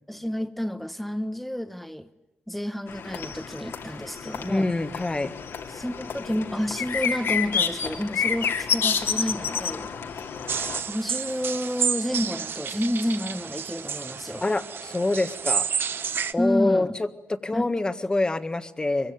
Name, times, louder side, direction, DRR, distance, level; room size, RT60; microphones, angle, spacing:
voice 1, 0.1-2.1 2.5-4.7 5.7-10.3 10.8-14.4 16.4-17.0 17.5-17.7, equal, 5° left, 1.3 m, -30 dB
sound 1, 2.9-10.8, left 6 dB, 70° left, 3.0 m, -29 dB
voice 2, 4.5-5.3 14.4-15.7 16.3-17.1 17.4-19.1, left 2 dB, 20° left, 1.7 m, -25 dB
sound 2, 10.5-16.3, right 7 dB, 55° right, 1.0 m, -30 dB
24.0 x 23.5 x 9.6 m
cardioid pair, 105°, 4 cm